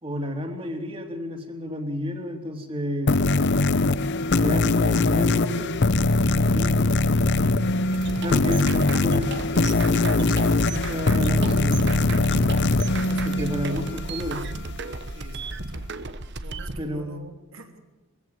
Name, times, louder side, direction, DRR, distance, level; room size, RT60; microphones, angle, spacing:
voice 1, 0.0-3.1 4.4-5.7 6.3-6.8 8.2-11.7 13.2-14.4 16.8-17.2, equal, 25° right, 4 dB, 3.1 m, -31 dB
sound 1, 3.1-14.2, left 2 dB, 55° left, 0.7 m, -22 dB
sound 2, 7.9-16.8, right 3 dB, 55° right, 1.2 m, -34 dB
voice 2, 13.0-13.7 15.1-15.8 16.4-17.8, right 2 dB, 75° right, 4 dB, 3.3 m, -44 dB
22.0 x 15.5 x 7.8 m, 1.1 s
head